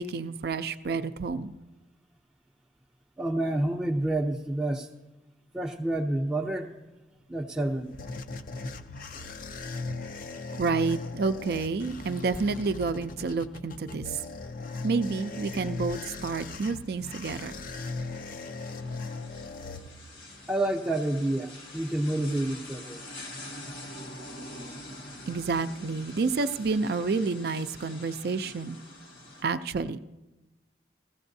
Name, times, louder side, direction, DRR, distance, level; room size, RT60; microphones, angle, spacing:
voice 1, 0.0-1.5 10.5-14.2 14.8-17.5 25.3-28.8 29.4-30.0, right 4 dB, 60° right, 10 dB, 0.4 m, -29 dB
voice 2, 3.2-4.9 5.5-6.8 7.3-8.0 20.5-23.0, right 1 dB, 5° right, -3 dB, 0.5 m, -29 dB
sound 1, 7.5-20.4, left 3 dB, 50° left, 0.5 m, -38 dB
sound 2, 14.6-29.4, left 1 dB, 70° left, 1.9 m, -46 dB
15.5 x 15.5 x 2.7 m, 1.0 s
head